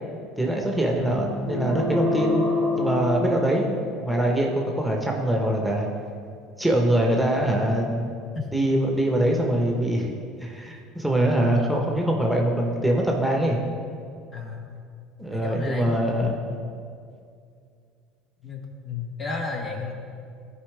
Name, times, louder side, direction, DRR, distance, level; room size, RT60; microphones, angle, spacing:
voice 1, 0.4-2.4 2.7-5.9 6.6-8.1 8.5-10.1 10.4-13.6 15.2-16.4, right 1 dB, ahead, 0 dB, 1.3 m, -23 dB
sound 1, 1.4-4.1, left 3 dB, 75° left, 1.8 m, -26 dB
voice 2, 14.3-14.7 15.3-16.3 18.4-19.9, left 4 dB, 35° left, 1 dB, 1.4 m, -33 dB
14.0 x 4.7 x 3.5 m, 2.3 s
hypercardioid pair, 75°, 0 cm